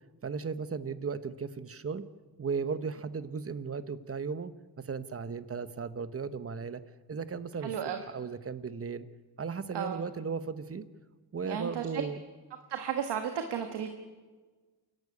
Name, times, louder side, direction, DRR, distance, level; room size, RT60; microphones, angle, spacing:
voice 1, 0.2-2.0 2.4-4.5 4.8-6.8 7.1-7.7 8.1-9.1 9.4-10.8 11.3-12.2, right 5 dB, 35° right, 13 dB, 1.1 m, -36 dB
voice 2, 7.6-8.0 9.7-10.0 11.4-12.0 12.7-13.9, right 8 dB, 85° right, 6 dB, 1.6 m, -33 dB
28.0 x 12.0 x 8.6 m, 1.4 s
cardioid pair, 100°, 40 cm